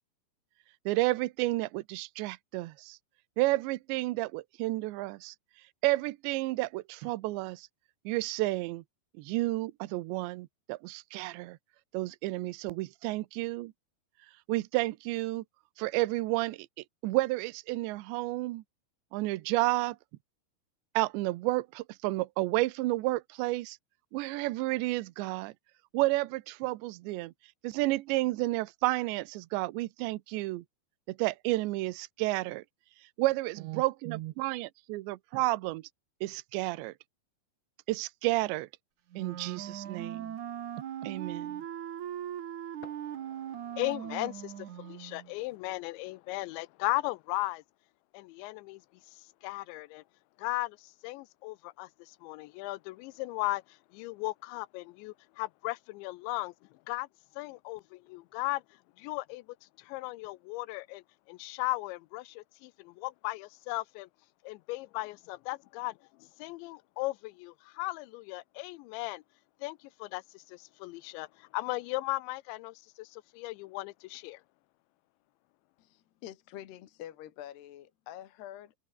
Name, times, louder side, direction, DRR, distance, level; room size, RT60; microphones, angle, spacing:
voice 1, 0.9-3.0 3.4-5.4 5.8-7.7 8.1-8.8 9.2-11.6 11.9-13.7 14.5-15.4 15.8-16.7 17.0-18.6 19.1-20.0 20.9-23.8 24.1-25.5 25.9-27.3 27.6-30.6 31.1-32.6 33.2-35.9 36.2-36.9 37.9-38.7 39.2-40.4 41.0-41.6, right 19 dB, 80° right, 3.1 m, -31 dB
Wind instrument woodwind instrument, 39.1-45.3, right 10 dB, 55° right, 2.5 m, -40 dB
voice 2, 42.8-47.6 48.1-48.8 49.1-50.0 50.4-56.5 56.9-57.1 57.4-58.6 59.0-59.5 59.8-64.1 64.4-69.2 69.6-74.4, left 21 dB, 90° left, 3.0 m, -37 dB
voice 3, 75.8-78.8, left 12 dB, 70° left, 3.6 m, -46 dB
omnidirectional pair, 5.2 m